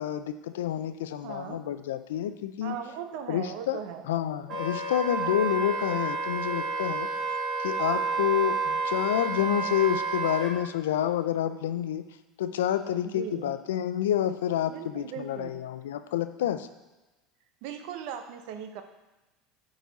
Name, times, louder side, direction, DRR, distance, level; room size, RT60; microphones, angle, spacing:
voice 1, 0.0-2.8 3.3-3.8 4.1-7.1 7.6-12.0 12.4-16.7, left 11 dB, 85° left, 10 dB, 0.4 m, -28 dB
voice 2, 1.2-1.6 2.6-4.0 13.0-13.5 14.7-15.6 17.6-18.8, right 9 dB, 70° right, 7 dB, 0.8 m, -38 dB
Wind instrument woodwind instrument, 4.5-10.5, right 4 dB, 45° right, 1.7 m, -30 dB
8.5 x 4.0 x 4.1 m, 1.1 s
hypercardioid pair, 90°, 0 cm